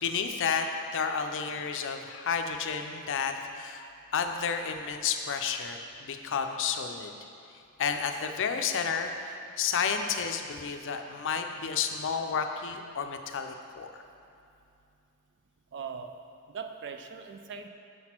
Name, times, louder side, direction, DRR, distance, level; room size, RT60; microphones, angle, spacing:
voice 1, 0.0-0.7 0.9-3.9 4.1-7.1 7.8-14.0, left 6 dB, 60° left, 6 dB, 0.5 m, -31 dB
voice 2, 15.7-16.1 16.5-17.7, right 6 dB, 55° right, 6 dB, 0.4 m, -40 dB
6.6 x 6.0 x 4.4 m, 2.6 s
head